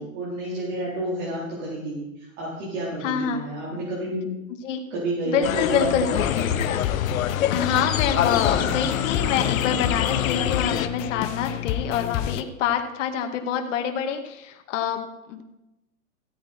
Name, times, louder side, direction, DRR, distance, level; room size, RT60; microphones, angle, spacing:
voice 1, 0.0-4.3 4.9-6.7 7.5-7.6 8.6-8.8, right 1 dB, 60° right, -6 dB, 4.3 m, -30 dB
voice 2, 3.0-3.4 4.6-4.8 5.3-6.1 7.5-15.4, left 7 dB, 60° left, 5 dB, 1.9 m, -26 dB
sound 1, 5.4-10.9, left 10 dB, 80° left, 1.0 m, -26 dB
sound 2, 6.2-12.4, left 13 dB, 30° left, 0.6 m, -29 dB
15.5 x 8.8 x 4.4 m, 0.91 s
hypercardioid pair, 135°, 41 cm